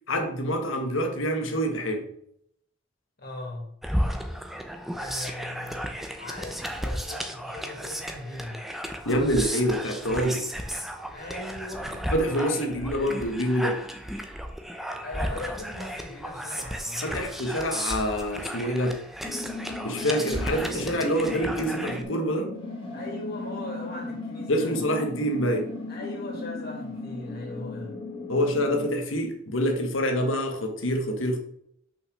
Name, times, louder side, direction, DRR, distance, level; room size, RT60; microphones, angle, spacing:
voice 1, 0.1-2.1 9.1-10.5 12.1-13.8 17.0-19.0 19.8-22.5 24.5-25.7 28.3-31.4, equal, 80° left, 1.6 m, -26 dB
voice 2, 3.2-3.7 4.9-8.6 11.1-12.1 12.5-13.0 15.0-17.3 22.9-24.8 25.9-28.0, left 2 dB, 50° left, 3.2 m, -39 dB
sound 1, 3.8-22.0, equal, ahead, 0.9 m, -34 dB
sound 2, 19.2-28.9, left 3 dB, 25° left, 2.2 m, -37 dB
6.2 x 6.0 x 6.2 m
head